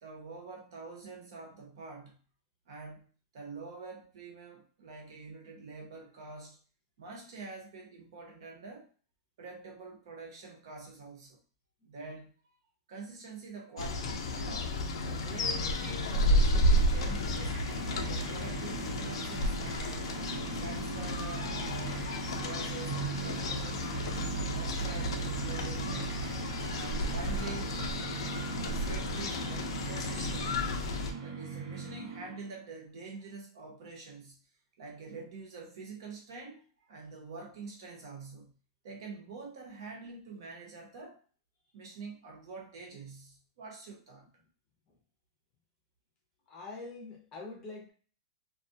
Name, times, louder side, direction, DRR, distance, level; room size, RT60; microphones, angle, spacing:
voice 1, 0.0-2.2 2.7-3.1 3.3-6.6 7.0-8.9 9.4-11.4 11.8-12.3 12.9-14.8 15.0-17.6 17.9-20.2 20.5-22.1 22.4-23.8 24.3-26.4 26.7-27.8 28.7-30.7 31.2-34.4 34.8-38.5 38.8-41.2 41.7-44.3, right 3 dB, 60° right, 1 dB, 0.9 m, -46 dB
sound 1, 13.8-31.1, left 1 dB, 80° left, 0.5 m, -32 dB
sound 2, 15.9-32.6, right 5 dB, 80° right, 1.2 m, -40 dB
voice 2, 46.5-47.9, left 3 dB, 20° left, -1 dB, 0.6 m, -44 dB
2.4 x 2.2 x 2.6 m, 0.40 s
supercardioid pair, 175°, 3 cm